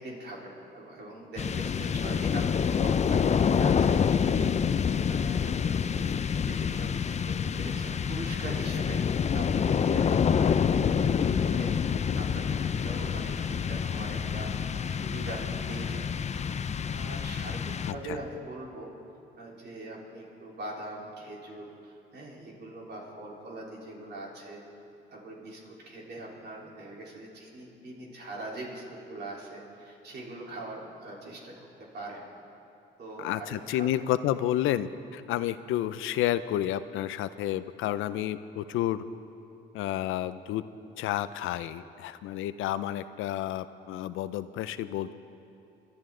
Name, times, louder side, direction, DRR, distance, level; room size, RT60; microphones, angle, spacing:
voice 1, 0.0-6.9 7.2-11.7 12.2-16.1 16.9-18.9 19.4-24.6 25.1-31.5 31.9-32.2 33.0-33.9, right 2 dB, 55° right, -3 dB, 3.7 m, -42 dB
sound 1, 1.4-18.3, left 7 dB, 35° left, 0.5 m, -27 dB
voice 2, 17.9-18.2 33.2-39.0 39.7-40.6 41.0-45.1, left 12 dB, 90° left, 13 dB, 0.5 m, -30 dB
27.0 x 11.5 x 3.8 m, 2.8 s
cardioid pair, 90°, 20 cm